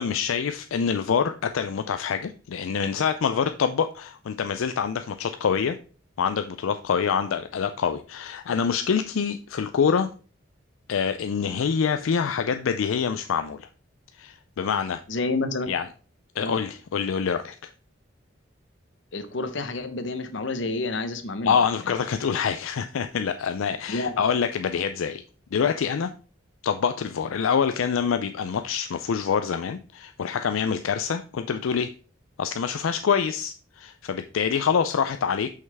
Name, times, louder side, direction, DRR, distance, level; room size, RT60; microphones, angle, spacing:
voice 1, 0.0-5.8 6.2-10.1 10.9-13.7 14.2-15.0 15.7-15.9 16.4-17.5 21.4-25.2 25.5-26.1 26.6-31.9 32.4-35.5, left 6 dB, 85° left, 9 dB, 0.4 m, -26 dB
voice 2, 15.1-15.7 16.4-16.6 19.1-21.5 23.9-24.2, left 3 dB, 65° left, 9 dB, 0.8 m, -29 dB
6.3 x 5.6 x 3.4 m, 0.38 s
head